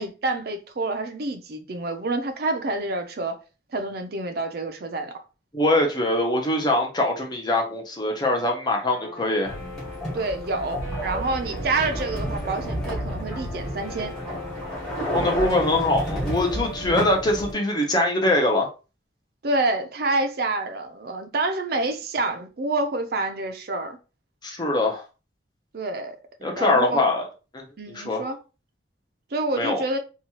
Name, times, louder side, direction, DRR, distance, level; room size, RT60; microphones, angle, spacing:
voice 1, 0.0-3.4 3.7-5.1 10.1-14.1 19.4-24.0 25.7-26.2 26.5-27.0 27.8-28.4 29.3-30.0, right 2 dB, 50° right, 0.4 m, -27 dB
voice 2, 5.5-9.6 15.1-18.7 24.4-25.0 26.4-27.3 27.5-28.3 29.6-29.8, left 1 dB, 20° left, 0.6 m, -23 dB
Guitar, 8.9-17.6, equal, 65° left, 1.5 m, -40 dB
sound 1, 9.4-17.5, equal, 5° left, 1.1 m, -31 dB
2.9 x 2.3 x 2.8 m
head